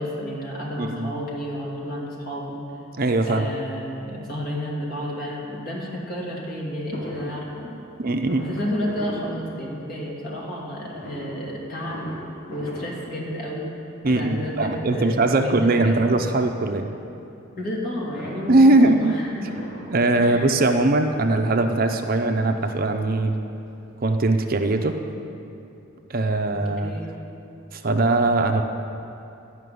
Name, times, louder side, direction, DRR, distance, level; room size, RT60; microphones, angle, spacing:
voice 1, 0.0-2.6 3.3-7.8 8.4-12.1 12.5-13.7 14.0-16.3 17.6-19.6 20.2-20.6 26.5-27.1, equal, 45° left, -4 dB, 2.5 m, -31 dB
voice 2, 0.8-1.2 3.0-3.5 6.9-7.0 8.0-8.5 14.0-16.9 18.5-19.2 19.9-23.4 24.0-25.0 26.1-26.9 27.7-28.6, right 2 dB, 45° right, 5 dB, 0.6 m, -20 dB
Fireworks, 6.9-10.1 10.9-13.8 14.1-14.7 15.6-16.7 17.9-20.5 21.3-21.4 21.7-21.8 22.1-23.4 23.7-23.8 24.0-24.1, equal, 70° left, 3.0 m, -41 dB
12.5 x 5.8 x 9.3 m, 2.7 s
head